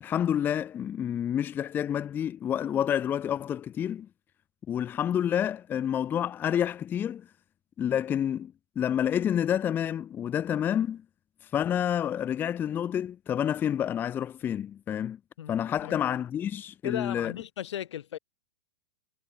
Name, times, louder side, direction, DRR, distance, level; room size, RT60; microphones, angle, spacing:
voice 1, 0.0-4.1 4.7-7.3 7.8-11.0 11.4-15.2 15.5-17.3, left 9 dB, 15° left, 0.8 m, -29 dB
voice 2, 15.4-16.0 16.8-18.2, left 11 dB, 75° left, 4.6 m, -36 dB
supercardioid pair, 170°, 15 cm